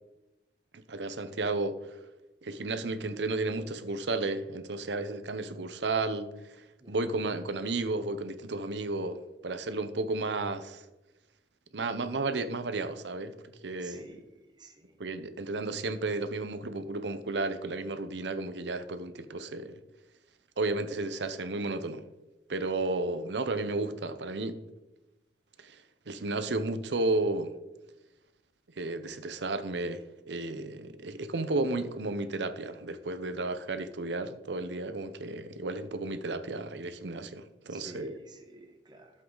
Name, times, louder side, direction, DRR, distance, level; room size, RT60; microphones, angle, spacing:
voice 1, 0.9-1.8 2.4-6.3 6.6-10.8 11.7-13.3 13.6-14.0 15.0-19.7 20.6-22.0 22.5-24.6 25.6-27.5 28.8-38.2, right 2 dB, 85° right, 0.8 m, -33 dB
voice 2, 6.8-7.3 13.8-14.2 14.6-15.0 37.7-39.1, right 1 dB, 25° right, 1.2 m, -49 dB
11.5 x 7.5 x 3.9 m
head